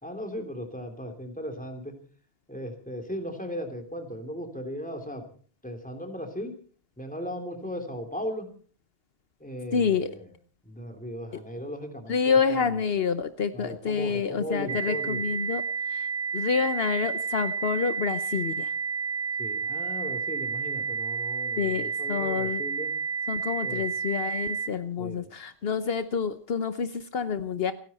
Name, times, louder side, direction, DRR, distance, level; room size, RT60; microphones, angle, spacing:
voice 1, 0.0-1.9 2.5-5.3 5.6-6.5 7.0-8.5 9.4-10.3 10.6-12.8 13.5-15.2 19.4-22.9 23.6-23.8 25.0-25.2, equal, 10° left, 4 dB, 3.2 m, -37 dB
voice 2, 9.7-10.1 12.1-16.1 16.3-18.7 21.6-22.6 23.3-27.7, left 6 dB, 70° left, 11 dB, 1.1 m, -28 dB
sound 1, 14.7-24.7, right 5 dB, 65° right, 1.3 m, -31 dB
29.5 x 10.5 x 4.3 m, 0.42 s
omnidirectional pair, 1.0 m